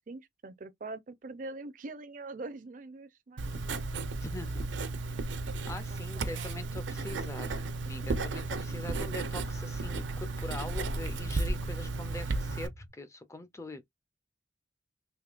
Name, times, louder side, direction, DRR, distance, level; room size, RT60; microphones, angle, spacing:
voice 1, 0.1-3.6 5.5-6.6, right 3 dB, 45° right, 0.4 m, -44 dB
Writing, 3.4-12.7, right 3 dB, 85° right, 0.6 m, -34 dB
voice 2, 4.2-4.7 5.2-7.6 7.8-13.9, left 1 dB, 15° left, 0.4 m, -43 dB
sound 1, 5.3-12.9, equal, 55° left, 1.3 m, -50 dB
3.5 x 3.1 x 2.4 m
head